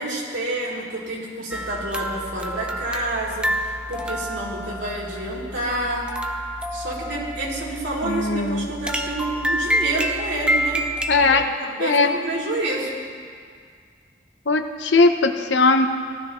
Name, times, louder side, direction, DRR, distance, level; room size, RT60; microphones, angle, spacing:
voice 1, 0.0-6.1 6.7-10.8 11.2-13.0, right 1 dB, 90° right, -5 dB, 2.8 m, -28 dB
sound 1, 1.5-11.4, right 1 dB, 5° right, 0.4 m, -28 dB
voice 2, 8.0-8.7 11.1-11.5 11.8-12.1 14.5-15.9, left 3 dB, 85° left, 7 dB, 0.8 m, -19 dB
18.0 x 12.0 x 3.1 m, 2.1 s
head